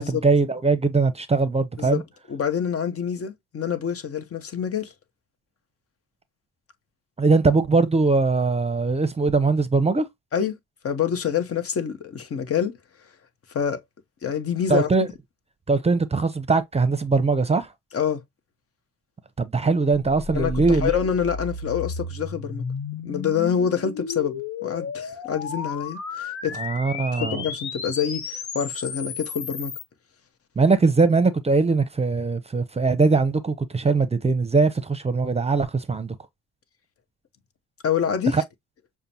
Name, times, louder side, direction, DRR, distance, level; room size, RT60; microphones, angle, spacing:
voice 1, 0.0-2.0 7.2-10.0 14.7-15.1 15.7-17.7 19.4-20.9 26.6-27.4 30.6-36.1 38.3-38.4, right 4 dB, 20° right, 0.7 m, -21 dB
voice 2, 2.3-4.9 10.3-10.6 10.8-12.8 13.5-13.8 14.2-15.1 17.9-18.2 20.3-22.6 23.0-26.6 27.1-29.8 37.8-38.4, left 8 dB, 50° left, 1.0 m, -26 dB
sound 1, 19.9-29.8, left 4 dB, 65° left, 1.3 m, -33 dB
6.6 x 2.2 x 2.9 m
cardioid pair, 90°, 30 cm